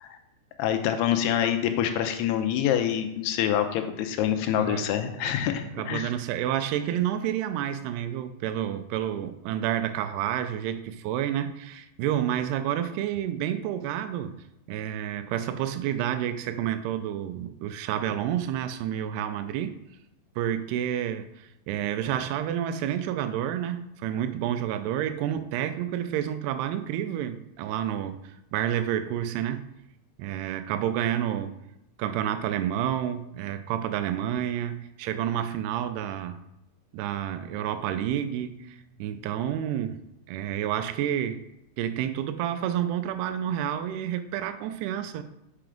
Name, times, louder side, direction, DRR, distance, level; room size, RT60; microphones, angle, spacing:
voice 1, 0.6-6.1, left 10 dB, 85° left, 7 dB, 2.7 m, -26 dB
voice 2, 5.8-19.7 20.4-29.6 30.2-31.6 32.0-36.4 36.9-40.0 40.3-41.4 41.8-45.2, right 10 dB, 85° right, 10 dB, 2.6 m, -29 dB
6.1 x 5.7 x 5.0 m, 0.85 s
omnidirectional pair, 4.7 m